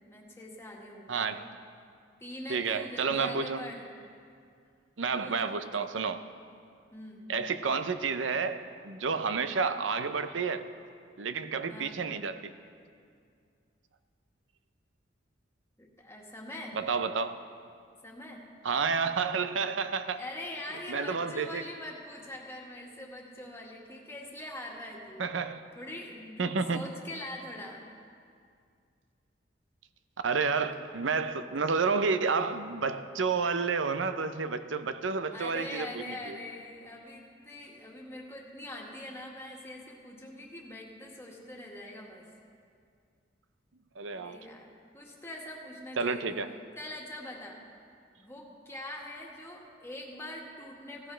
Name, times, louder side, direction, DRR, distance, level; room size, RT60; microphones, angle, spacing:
voice 1, 0.1-1.3 2.2-3.8 5.2-5.7 6.9-7.3 11.7-12.1 15.8-16.8 18.0-18.5 20.2-25.2 25.8-27.8 35.3-42.3 44.1-46.5 46.8-47.6 48.2-51.1, left 1 dB, 15° left, -2 dB, 1.8 m, -43 dB
voice 2, 1.1-1.4 2.5-3.6 5.0-6.2 7.3-10.7 11.2-12.5 16.7-17.4 18.6-20.2 20.9-21.6 25.2-25.6 26.4-26.9 30.2-36.4 44.0-44.4 46.0-46.5, right 5 dB, 85° right, 10 dB, 0.7 m, -30 dB
16.0 x 16.0 x 3.4 m, 2.3 s
head